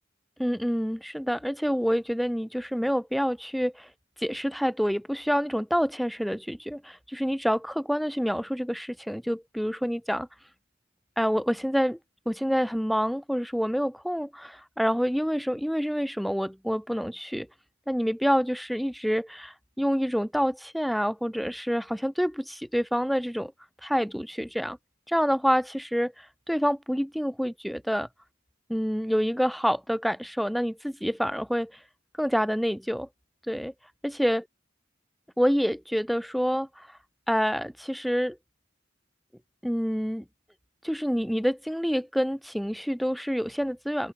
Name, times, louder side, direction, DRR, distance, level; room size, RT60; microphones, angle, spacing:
voice 1, 0.4-3.9 4.2-10.3 11.2-12.0 12.3-17.5 17.9-23.5 23.8-24.8 25.1-28.1 28.7-31.7 32.2-33.1 33.5-33.7 34.0-34.4 35.4-36.9 37.3-38.4 39.6-40.2 40.8-44.1, equal, ahead, 2.4 m, -27 dB
open air
head